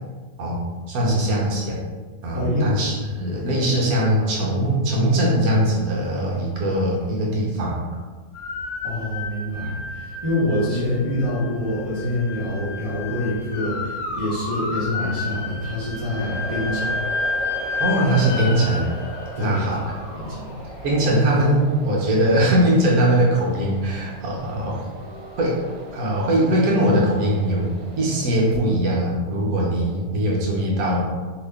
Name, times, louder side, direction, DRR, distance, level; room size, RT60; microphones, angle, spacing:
voice 1, 0.9-1.8 2.2-7.9 17.8-18.9 19.4-19.8 20.8-24.9 25.4-25.6 25.9-31.0, right 1 dB, 65° right, -3 dB, 1.0 m, -21 dB
voice 2, 2.3-2.7 8.8-16.9 19.3-19.9 20.1-20.5, left 1 dB, 25° right, -12 dB, 0.8 m, -26 dB
sound 1, 8.3-21.4, left 3 dB, 75° left, 1.1 m, -31 dB
sound 2, 16.1-28.6, right 3 dB, 85° right, 1.3 m, -39 dB
2.9 x 2.8 x 3.3 m, 1.3 s
omnidirectional pair, 1.9 m